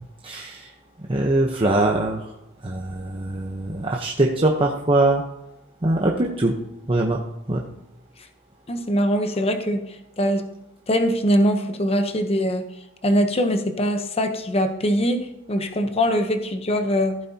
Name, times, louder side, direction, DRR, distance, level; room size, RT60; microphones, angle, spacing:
voice 1, 0.2-0.7 1.1-2.2 2.6-5.2 5.8-6.6 6.9-7.2 7.5-7.6, right 2 dB, 25° right, 0 dB, 0.9 m, -22 dB
voice 2, 8.7-10.5 10.9-12.6 13.0-17.2, equal, 30° left, 7 dB, 0.9 m, -22 dB
15.0 x 8.4 x 2.9 m, 0.89 s
head